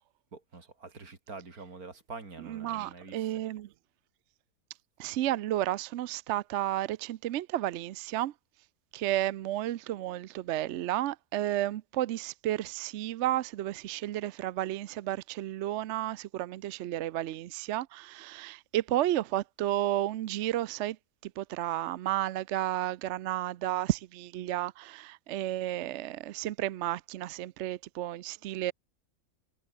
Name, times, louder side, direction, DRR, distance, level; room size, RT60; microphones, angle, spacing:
voice 1, 0.3-3.4, right 4 dB, 80° right, 3.6 m, -46 dB
voice 2, 2.4-3.7 5.0-8.3 8.9-21.0 21.2-28.7, right 13 dB, 65° right, 0.8 m, -32 dB
omnidirectional pair, 1.5 m